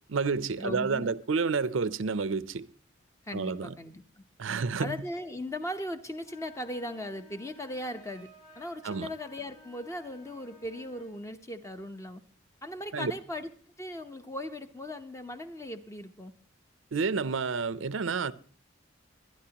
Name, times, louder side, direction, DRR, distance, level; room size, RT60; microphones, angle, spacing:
voice 1, 0.0-2.7 3.3-3.7 4.4-5.0 8.8-9.1 12.9-13.1 16.9-18.3, right 4 dB, 80° right, 0.6 m, -30 dB
voice 2, 0.6-1.1 3.2-4.2 4.8-8.3 8.5-12.2 12.6-13.5 13.8-16.3, left 1 dB, 15° left, 0.8 m, -38 dB
sound 1, 6.2-11.2, left 1 dB, 45° left, 4.8 m, -55 dB
23.0 x 10.5 x 2.9 m
head